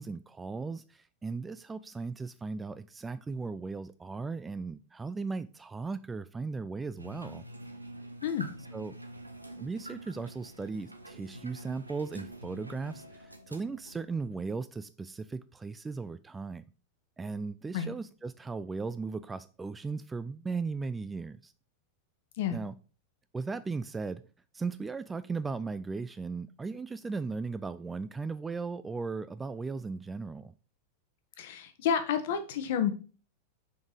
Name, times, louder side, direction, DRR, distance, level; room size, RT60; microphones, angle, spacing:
voice 1, 0.0-7.5 8.7-8.9 9.6-16.6 17.2-21.5 22.5-22.8 23.3-24.2 24.5-30.5, right 4 dB, 15° right, 0.4 m, -37 dB
sound 1, 7.0-14.4, right 1 dB, 85° right, 0.9 m, -47 dB
voice 2, 31.4-32.9, left 8 dB, 55° left, 1.3 m, -30 dB
6.0 x 5.3 x 4.9 m
figure-of-eight pair, 90°, 0 cm